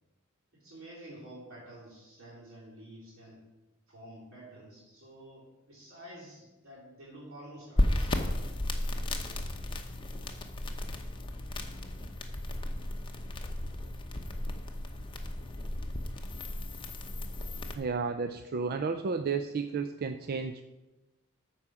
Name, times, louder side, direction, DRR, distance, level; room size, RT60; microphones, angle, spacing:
voice 1, 0.5-3.5 3.9-8.2 14.8-14.9 15.3-15.4, right 1 dB, 60° right, -10 dB, 3.6 m, -50 dB
sound 1, 7.8-17.7, left 1 dB, 20° left, 0.9 m, -34 dB
voice 2, 17.8-20.6, right 5 dB, 45° right, 8 dB, 0.4 m, -32 dB
13.5 x 4.8 x 6.1 m, 1.1 s
head